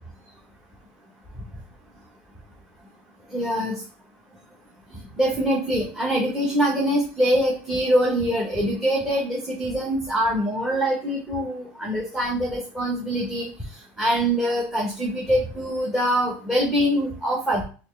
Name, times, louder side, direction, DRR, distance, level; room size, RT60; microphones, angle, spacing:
voice 1, 3.3-3.8 5.2-13.5 14.0-17.6, equal, 5° right, -3 dB, 0.9 m, -24 dB
4.0 x 2.4 x 3.2 m, 0.38 s
supercardioid pair, 135°, 6 cm